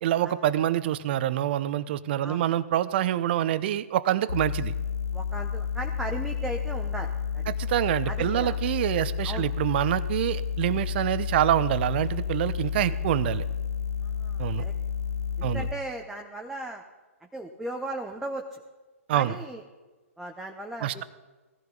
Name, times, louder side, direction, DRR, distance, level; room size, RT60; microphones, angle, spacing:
voice 1, 0.0-4.7 7.5-13.4 14.4-14.6 15.4-15.7 19.1-19.4 20.8-21.0, right 12 dB, 45° right, 16 dB, 0.8 m, -26 dB
sound 1, 4.3-15.7, left 7 dB, 80° left, 0.7 m, -31 dB
voice 2, 5.1-7.5 8.0-8.6 9.2-9.5 12.9-13.0 14.0-14.7 15.4-16.8 17.3-18.6 19.1-19.6 20.2-21.0, right 1 dB, 5° right, 1 dB, 1.0 m, -37 dB
19.5 x 14.5 x 4.0 m, 1.3 s
figure-of-eight pair, 120°, 8 cm